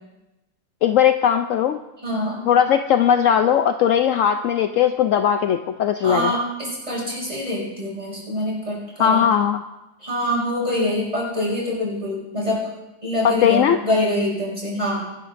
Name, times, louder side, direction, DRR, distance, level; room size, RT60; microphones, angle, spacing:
voice 1, 0.8-1.8 2.5-6.3 9.0-9.6 13.2-13.8, left 9 dB, 80° left, 7 dB, 0.7 m, -18 dB
voice 2, 2.0-2.4 6.0-9.3 10.0-12.7 13.0-15.1, left 1 dB, 20° right, -4 dB, 5.9 m, -25 dB
23.0 x 12.5 x 2.6 m, 1.0 s
omnidirectional pair, 1.9 m